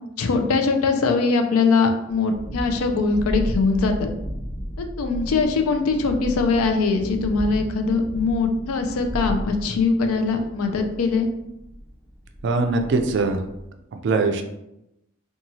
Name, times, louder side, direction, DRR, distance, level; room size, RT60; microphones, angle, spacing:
voice 1, 0.2-4.1 4.8-11.3, left 4 dB, 85° left, 5 dB, 0.4 m, -22 dB
Thunderstorm, 2.1-13.7, equal, 25° left, 0.9 m, -34 dB
voice 2, 12.4-13.4 13.9-14.4, right 3 dB, 55° right, 6 dB, 0.3 m, -21 dB
2.9 x 2.3 x 2.7 m, 0.86 s
head